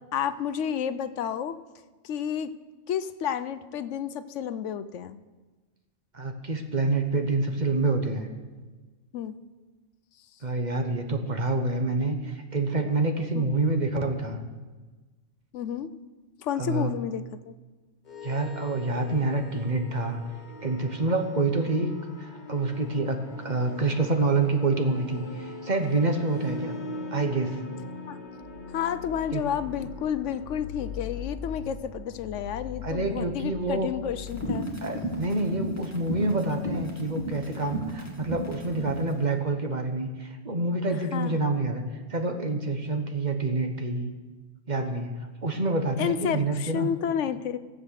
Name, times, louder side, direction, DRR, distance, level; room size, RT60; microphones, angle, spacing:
voice 1, 0.1-1.6 2.0-2.5 2.9-5.2 9.1-9.3 13.3-13.5 15.5-15.9 16.4-17.6 28.1-28.2 28.7-34.7 41.1-41.4 46.0-47.6, left 8 dB, 75° left, 13 dB, 1.0 m, -30 dB
voice 2, 6.1-8.3 10.4-14.4 16.5-16.9 18.2-20.2 20.6-21.9 22.2-26.8 27.1-27.6 29.3-29.4 32.8-33.9 34.8-41.8 42.1-44.1 44.7-46.9, right 2 dB, 40° right, 5 dB, 1.2 m, -27 dB
sound 1, 18.1-34.6, left 3 dB, 40° left, 1.0 m, -40 dB
sound 2, 34.2-39.1, equal, 15° left, 2.0 m, -34 dB
16.5 x 7.7 x 6.4 m, 1.3 s
omnidirectional pair, 1.3 m